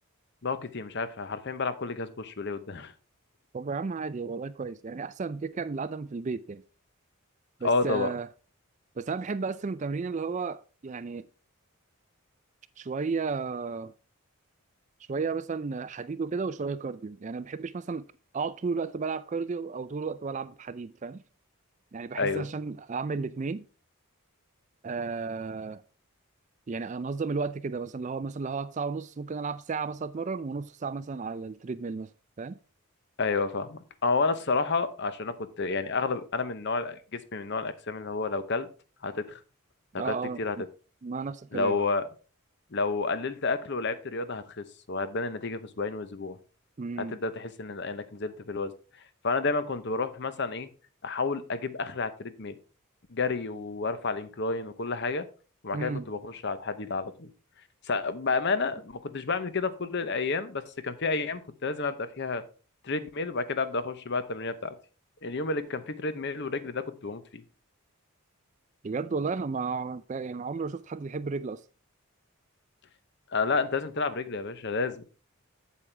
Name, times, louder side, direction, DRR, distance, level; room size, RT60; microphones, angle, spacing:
voice 1, 0.4-2.9 7.6-8.1 22.2-22.4 33.2-38.7 39.0-39.4 39.9-40.6 41.5-42.0 42.7-46.4 47.1-48.7 49.2-50.7 51.0-52.6 53.1-55.3 55.6-57.3 57.9-62.4 62.8-64.7 65.2-67.4 73.3-75.0, left 4 dB, 50° left, 0.8 m, -30 dB
voice 2, 3.5-6.6 7.6-8.3 9.0-11.3 12.8-13.9 15.1-18.1 18.3-21.2 21.9-23.6 24.8-25.8 26.7-32.1 32.4-32.6 39.9-40.6 41.0-41.8 46.8-47.2 55.7-56.1 68.8-71.6, right 4 dB, 35° right, 0.4 m, -33 dB
8.3 x 7.5 x 3.3 m
head